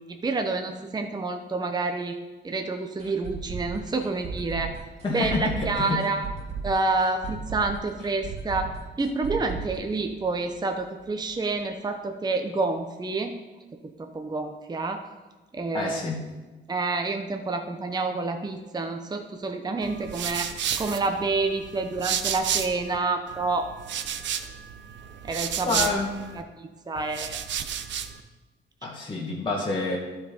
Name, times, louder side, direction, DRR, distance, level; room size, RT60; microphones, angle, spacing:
voice 1, 0.0-2.2 2.4-4.8 5.1-6.3 6.6-13.4 14.0-15.0 15.5-16.0 16.7-20.5 20.8-23.7 25.2-25.9 26.6-27.4, right 3 dB, 20° right, 5 dB, 0.8 m, -28 dB
sound 1, 3.0-10.7 11.0-11.1 11.5-11.6, right 5 dB, 35° right, 3.0 m, -36 dB
voice 2, 5.0-6.0 15.7-16.2 25.6-26.2 28.8-30.0, left 3 dB, 25° left, -4 dB, 1.8 m, -28 dB
sound 2, 19.8-23.0 23.3-26.4 27.0-28.2, right 8 dB, 65° right, 0.7 m, -32 dB
12.0 x 4.8 x 5.1 m, 1.2 s
cardioid pair, 90°, 20 cm